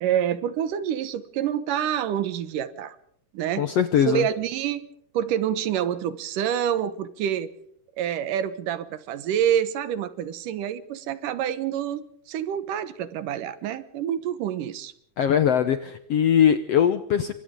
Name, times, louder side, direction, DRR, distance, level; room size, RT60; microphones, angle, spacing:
voice 1, 0.0-3.0 3.3-3.7 4.1-4.9 5.1-7.5 8.0-14.9, right 10 dB, 75° right, 14 dB, 2.6 m, -27 dB
voice 2, 3.6-4.2 15.2-17.3, left 9 dB, 70° left, 10 dB, 1.5 m, -21 dB
28.0 x 24.5 x 3.8 m, 0.67 s
omnidirectional pair, 3.9 m